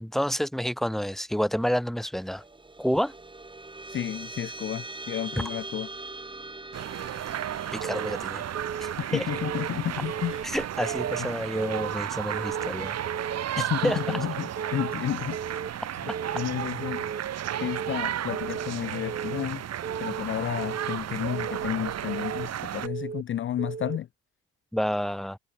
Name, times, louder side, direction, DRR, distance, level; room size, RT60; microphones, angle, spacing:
voice 1, 0.0-2.4 2.8-3.1 7.7-8.4 9.1-9.2 10.5-13.0 13.5-14.0 24.7-25.4, equal, ahead, 1.7 m, -29 dB
sound 1, 2.1-12.8, right 2 dB, 15° right, 2.8 m, -43 dB
voice 2, 3.9-5.9 9.0-10.5 11.2-11.3 13.6-15.4 16.0-17.1 17.6-19.6 20.0-24.1, left 11 dB, 40° left, 0.5 m, -32 dB
sound 2, 6.7-22.9, right 10 dB, 55° right, 1.3 m, -33 dB
Keyboard (musical) / Alarm, 7.8-8.2 8.5-8.9 9.3-9.7 10.0-10.4 10.8-11.2 11.6-11.9 12.3-12.7 13.1-13.4 13.8-14.2 14.6-14.9 15.3-15.7 16.1-16.4 16.8-17.2 17.6-17.9 18.3-18.7 19.1-19.5 19.8-20.2 20.6-21.0 21.3-21.7 22.1-22.5 22.8-23.2 23.6-24.0, right 6 dB, 30° right, 0.9 m, -35 dB
cardioid pair, 90°, 30 cm